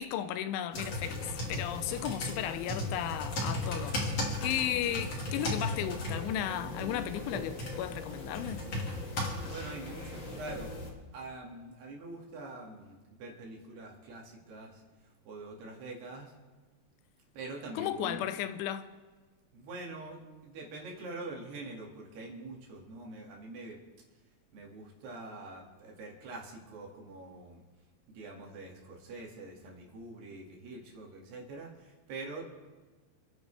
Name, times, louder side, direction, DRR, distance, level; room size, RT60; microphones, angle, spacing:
voice 1, 0.0-4.0 4.4-8.6 17.8-18.9, left 11 dB, 85° left, 3.2 m, -34 dB
sound 1, 0.7-10.9, left 1 dB, 40° left, 3.2 m, -36 dB
voice 2, 4.7-5.1 5.4-5.7 9.5-10.7 11.1-16.3 17.3-18.3 19.5-23.8 24.5-27.6 28.1-32.5, right 2 dB, 65° right, 4.2 m, -45 dB
29.5 x 10.5 x 3.4 m
omnidirectional pair, 5.3 m